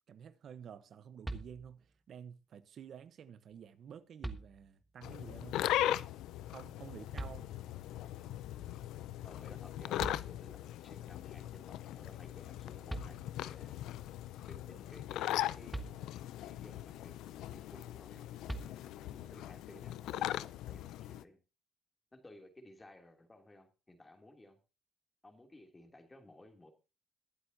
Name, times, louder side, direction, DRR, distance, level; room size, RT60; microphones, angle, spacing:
voice 1, 0.1-5.7 6.5-7.6, right 8 dB, 60° right, 1.0 m, -51 dB
sound 1, 1.2-2.0 3.5-3.6 4.2-5.0 7.1-7.9 9.7-9.8 10.0-10.8 12.5-12.6 12.9-13.6 15.7-16.5 18.5-19.2, right 2 dB, 10° right, 1.4 m, -44 dB
sound 2, 5.0-21.2, left 13 dB, 90° left, 0.5 m, -39 dB
voice 2, 9.2-13.8 14.4-15.8 16.4-18.3 18.6-21.4 22.1-24.6 25.2-26.7, left 1 dB, 20° left, 3.0 m, -57 dB
22.0 x 7.9 x 2.8 m
cardioid pair, 90°, 0 cm